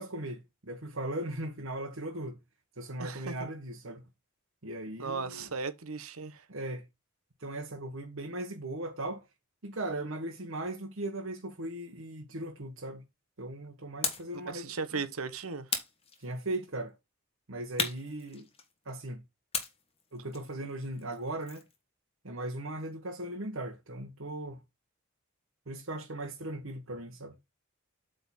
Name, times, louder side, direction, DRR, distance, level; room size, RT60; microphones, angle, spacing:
voice 1, 0.0-2.4 2.8-4.0 4.6-5.5 6.5-6.8 7.4-9.3 9.6-13.0 13.4-15.0 16.2-17.0 17.5-18.5 18.8-19.2 20.1-21.6 22.2-24.6 25.7-27.3, right 1 dB, 65° right, 1.2 m, -38 dB
voice 2, 3.0-3.5 5.0-6.5 14.5-15.7, right 4 dB, 85° right, 1.0 m, -37 dB
sound 1, 14.0-14.4 15.7-16.6 17.8-18.9 19.5-21.8, left 5 dB, 25° left, 1.4 m, -36 dB
8.3 x 3.9 x 4.2 m
head